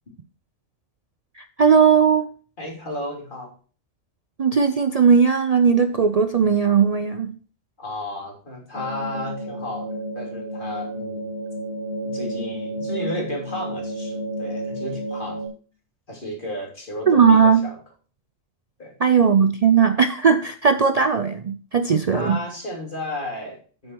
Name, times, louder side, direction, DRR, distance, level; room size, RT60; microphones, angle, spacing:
voice 1, 1.4-2.3 4.4-7.3 17.1-17.6 19.0-22.4, right 6 dB, 75° right, 10 dB, 0.3 m, -17 dB
voice 2, 2.6-3.5 7.8-11.2 12.0-15.4 16.1-17.8 18.8-18.9 22.1-23.9, left 1 dB, 40° left, -1 dB, 3.2 m, -33 dB
sound 1, 8.7-15.5, right 1 dB, 55° left, 2.8 m, -31 dB
8.6 x 7.5 x 4.5 m, 0.40 s
omnidirectional pair, 1.4 m